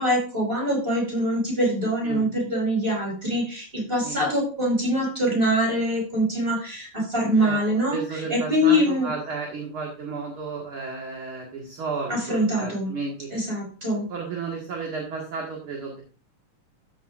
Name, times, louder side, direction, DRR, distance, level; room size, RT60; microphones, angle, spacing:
voice 1, 0.0-9.1 12.1-12.9 13.3-14.1, equal, 15° right, -1 dB, 5.5 m, -24 dB
voice 2, 7.9-13.3 13.9-16.0, right 4 dB, 45° right, -1 dB, 2.4 m, -33 dB
13.5 x 7.9 x 2.5 m, 0.35 s
omnidirectional pair, 3.6 m